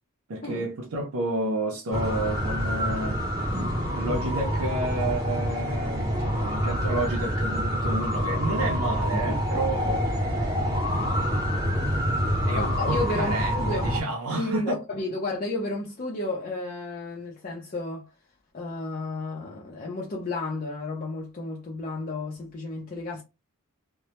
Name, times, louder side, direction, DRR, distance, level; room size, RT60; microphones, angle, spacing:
voice 1, 0.3-3.2 3.9-10.1 12.4-14.8, right 2 dB, 70° right, 0.5 m, -30 dB
sound 1, 1.9-14.0, equal, 15° right, 0.7 m, -26 dB
voice 2, 12.5-13.9 14.3-18.1 18.5-23.2, left 2 dB, 40° left, 0.5 m, -32 dB
2.1 x 2.1 x 2.8 m
head